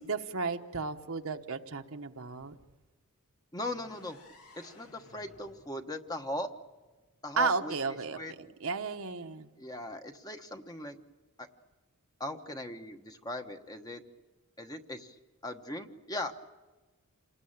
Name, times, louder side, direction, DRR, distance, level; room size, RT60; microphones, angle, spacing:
voice 1, 0.0-2.5 7.4-9.5, right 4 dB, 65° right, 6 dB, 1.1 m, -33 dB
voice 2, 3.5-4.2 4.6-6.5 7.2-7.7 8.1-8.3 9.6-11.0 11.4-11.5 12.2-14.0 14.6-15.2 15.4-16.3, left 1 dB, 15° left, 6 dB, 1.1 m, -39 dB
sound 1, 3.6-7.4, left 2 dB, 80° left, 2.6 m, -59 dB
28.0 x 19.5 x 8.9 m, 1.2 s
head